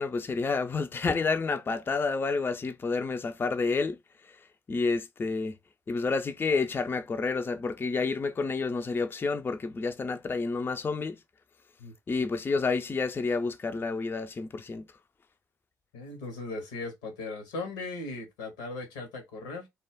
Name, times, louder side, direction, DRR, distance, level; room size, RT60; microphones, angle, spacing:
voice 1, 0.0-4.0 4.7-5.6 5.9-11.2 12.1-14.9, left 4 dB, 25° left, 0.3 m, -29 dB
voice 2, 15.9-19.7, left 3 dB, 80° left, 0.8 m, -38 dB
2.2 x 2.1 x 3.3 m
hypercardioid pair, 45°, 9 cm